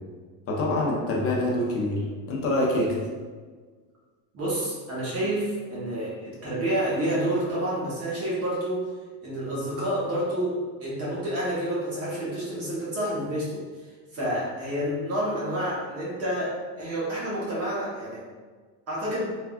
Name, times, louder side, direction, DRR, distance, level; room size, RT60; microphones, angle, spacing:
voice 1, 0.5-2.0 2.3-2.9, left 1 dB, 30° left, -2 dB, 0.5 m, -25 dB
voice 2, 4.3-8.9 9.2-13.6 14.1-18.2 18.9-19.3, right 1 dB, 30° right, -7 dB, 0.9 m, -29 dB
3.4 x 2.3 x 2.3 m, 1.5 s
supercardioid pair, 130°, 47 cm